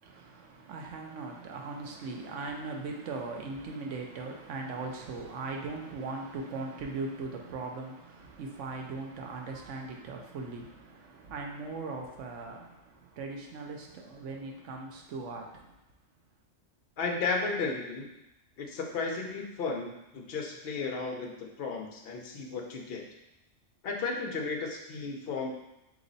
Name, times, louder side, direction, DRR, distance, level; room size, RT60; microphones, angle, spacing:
voice 1, 0.0-15.8, right 3 dB, 70° right, 1 dB, 1.0 m, -39 dB
voice 2, 17.0-18.1 18.6-23.0 23.8-25.5, left 4 dB, 55° left, 1 dB, 0.8 m, -34 dB
4.0 x 3.1 x 3.9 m, 0.91 s
omnidirectional pair, 1.3 m